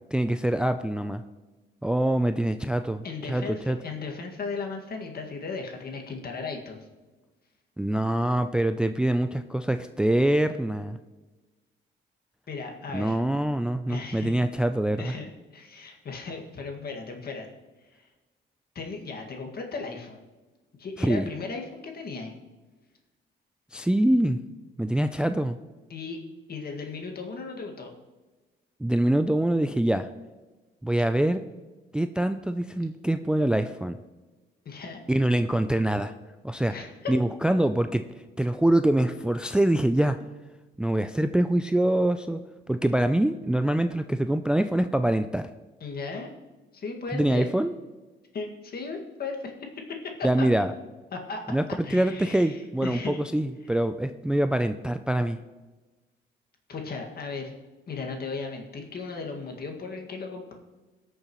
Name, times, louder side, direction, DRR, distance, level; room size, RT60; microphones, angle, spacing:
voice 1, 0.1-1.2 1.8-3.8 7.8-11.0 12.9-15.1 21.0-21.3 23.7-24.4 24.8-25.6 28.8-30.1 30.8-31.4 31.9-34.0 35.1-36.1 36.4-36.7 37.1-38.0 38.4-40.2 40.8-42.4 42.7-45.5 47.1-47.7 50.2-50.7 51.5-51.6 51.9-55.4, right 1 dB, 5° right, 9 dB, 0.4 m, -24 dB
voice 2, 3.0-6.8 12.5-13.2 13.9-14.4 15.0-17.5 18.0-18.1 18.8-20.2 20.8-22.3 25.9-26.2 26.5-27.9 34.7-35.0 36.7-37.1 45.8-46.3 46.7-47.5 48.3-49.5 50.0-50.1 50.4-50.5 51.1-51.4 51.8-53.2 53.6-53.8 56.7-57.5 57.9-60.5, left 4 dB, 50° left, 2 dB, 1.9 m, -36 dB
19.0 x 6.7 x 3.1 m, 1.2 s
cardioid pair, 90°, 20 cm